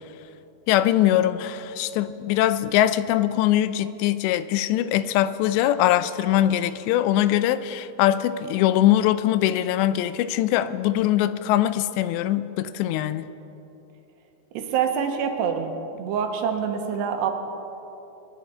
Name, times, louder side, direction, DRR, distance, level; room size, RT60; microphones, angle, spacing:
voice 1, 0.7-13.3, left 12 dB, 90° left, 14 dB, 2.8 m, -22 dB
voice 2, 14.5-15.7 16.0-17.3, right 7 dB, 80° right, 4 dB, 3.2 m, -25 dB
26.0 x 10.5 x 4.3 m, 3.0 s
omnidirectional pair, 4.9 m